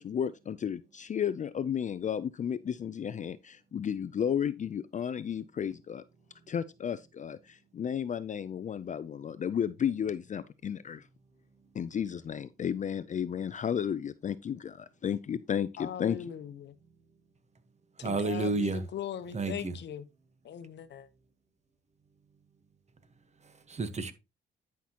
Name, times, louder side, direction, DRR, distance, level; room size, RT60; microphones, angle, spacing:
voice 1, 0.0-6.0 6.5-11.1 11.7-16.2, left 8 dB, 40° left, 0.5 m, -33 dB
voice 2, 15.8-16.7 18.0-20.1 20.4-21.1, left 9 dB, 60° left, 0.9 m, -40 dB
voice 3, 18.0-18.8 19.3-19.8 23.4-24.1, right 3 dB, 35° right, 1.3 m, -31 dB
10.5 x 5.8 x 2.9 m
cardioid pair, 90°, 20 cm